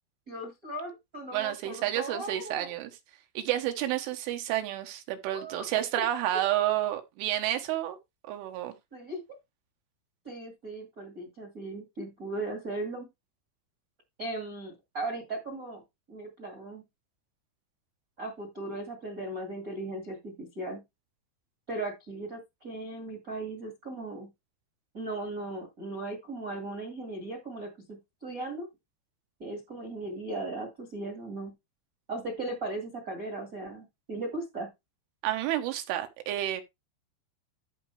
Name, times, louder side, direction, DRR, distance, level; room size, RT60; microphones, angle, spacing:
voice 1, 0.3-2.7 5.3-6.0 8.9-9.2 10.2-13.1 14.2-15.8 16.1-16.8 18.2-20.8 21.7-24.3 24.9-28.7 29.4-31.5 32.1-34.7, right 2 dB, 50° right, 0.9 m, -37 dB
voice 2, 1.3-2.9 3.4-8.0 8.3-8.7 35.2-36.6, right 13 dB, 85° right, 3.7 m, -30 dB
14.0 x 4.9 x 3.3 m
omnidirectional pair, 5.5 m